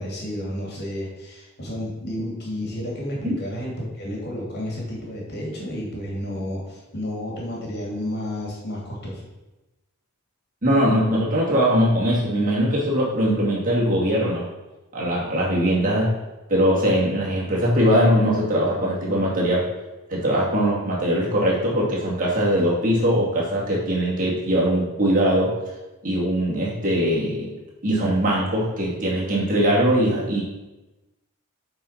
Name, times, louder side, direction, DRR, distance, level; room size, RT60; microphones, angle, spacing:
voice 1, 0.0-9.2, left 1 dB, 50° left, -3 dB, 2.8 m, -31 dB
voice 2, 10.6-14.5 14.9-16.1 16.5-19.7 20.1-25.5 26.0-27.5 27.8-30.4, equal, 40° right, -4 dB, 2.4 m, -21 dB
7.6 x 4.9 x 5.8 m, 1.1 s
head